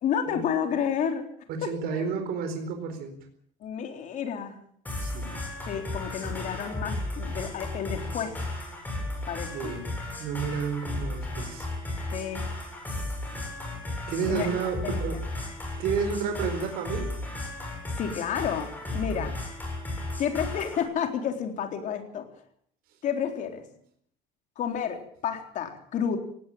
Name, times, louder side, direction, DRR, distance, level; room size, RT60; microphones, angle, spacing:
voice 1, 0.0-1.3 1.6-2.0 3.6-4.6 5.7-8.4 9.3-9.8 12.1-12.4 14.3-14.5 14.8-15.2 17.9-19.4 20.2-22.3 23.0-23.6 24.6-26.2, left 8 dB, 45° left, 5 dB, 3.8 m, -30 dB
voice 2, 1.5-3.2 5.0-5.4 9.5-9.9 10.2-11.7 14.1-15.2 15.8-17.1 19.1-19.3, right 6 dB, 60° right, 6 dB, 4.6 m, -31 dB
sound 1, 4.9-20.9, left 2 dB, 10° left, 7.6 m, -34 dB
18.0 x 17.5 x 8.8 m, 0.63 s
cardioid pair, 160°, 18 cm